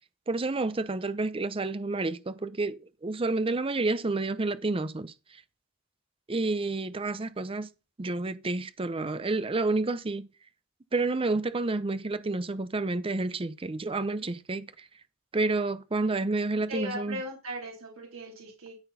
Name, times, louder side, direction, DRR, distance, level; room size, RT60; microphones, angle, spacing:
voice 1, 0.3-5.1 6.3-7.7 8.0-10.3 10.9-14.9 15.3-17.2, right 3 dB, 25° right, 0.6 m, -29 dB
voice 2, 16.7-18.8, equal, 80° right, 3.1 m, -38 dB
13.0 x 4.4 x 5.5 m
head